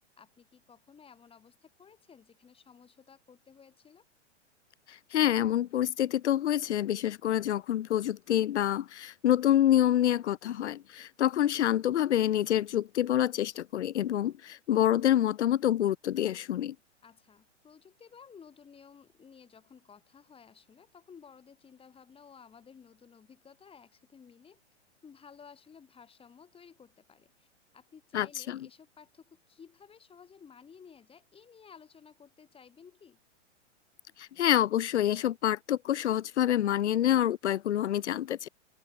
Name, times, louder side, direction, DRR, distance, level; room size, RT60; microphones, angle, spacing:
voice 1, 0.2-4.0 17.0-24.6 25.0-27.5 27.7-33.2, left 6 dB, 15° left, 6.4 m, -55 dB
voice 2, 4.9-16.7 28.1-28.6 34.2-38.5, left 11 dB, 70° left, 1.3 m, -27 dB
hypercardioid pair, 125°, 36 cm